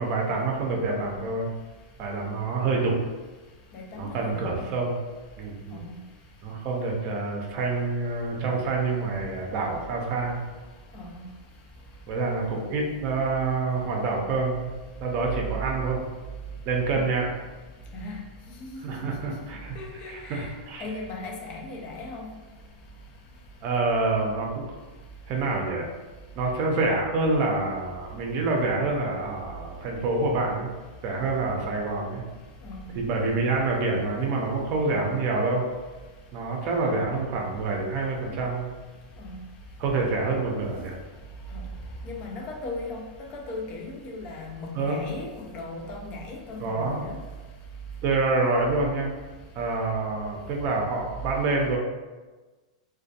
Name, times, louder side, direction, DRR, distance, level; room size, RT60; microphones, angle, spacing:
voice 1, 0.0-1.5 2.0-3.0 3.9-4.9 5.4-5.8 6.4-10.4 12.1-14.7 15.0-16.0 16.6-17.3 18.8-19.8 20.1-20.8 23.6-24.7 25.3-25.9 26.4-30.7 31.0-32.2 32.9-35.7 36.3-38.7 39.8-41.0 44.7-45.0 46.6-47.0 48.0-49.1 49.5-51.8, right 3 dB, 45° right, 0 dB, 0.5 m, -27 dB
voice 2, 3.7-4.7 5.7-6.0 10.9-11.3 16.9-17.1 17.9-18.3 18.6-19.3 19.8-22.3 32.6-32.9 39.2-39.4 41.5-41.7 42.0-43.0 43.3-47.2, left 2 dB, 40° left, 0 dB, 0.4 m, -37 dB
2.4 x 2.2 x 2.7 m, 1.3 s
hypercardioid pair, 130°, 4 cm